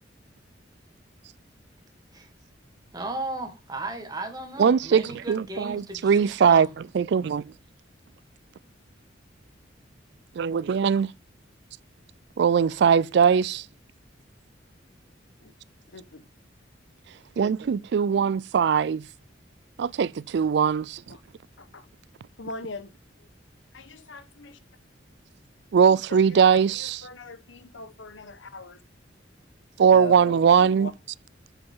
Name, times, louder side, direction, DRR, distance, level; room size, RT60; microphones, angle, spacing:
voice 1, 2.9-6.7, right 2 dB, 20° right, 1.8 m, -35 dB
voice 2, 4.6-6.7 6.9-7.5 10.4-11.1 12.4-13.6 17.4-19.0 19.8-21.0 25.7-27.0 29.8-30.9, right 7 dB, 65° right, 0.3 m, -21 dB
voice 3, 15.9-16.2 21.1-21.2 21.6-21.9 22.4-22.9 23.7-24.6 26.1-28.8 29.9-30.9, left 2 dB, 90° left, 1.2 m, -40 dB
7.8 x 7.1 x 3.7 m
head